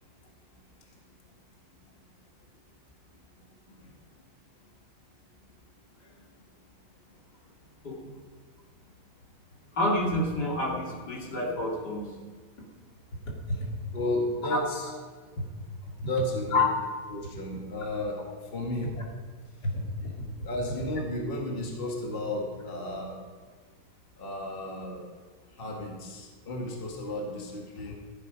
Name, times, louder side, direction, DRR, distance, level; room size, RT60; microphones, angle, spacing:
voice 1, 9.7-12.1 13.5-13.6 14.5-14.6 15.4-15.5 16.0-16.1 16.5-16.7 19.6-19.7, left 2 dB, 70° left, -2 dB, 3.3 m, -28 dB
voice 2, 13.9-14.9 16.0-16.7 17.1-18.2 18.5-18.9 20.0-20.1 20.4-23.1 24.2-25.0 25.6-27.9, left 1 dB, 30° left, -1 dB, 2.2 m, -33 dB
15.0 x 11.5 x 5.2 m, 1.5 s
omnidirectional pair, 1.8 m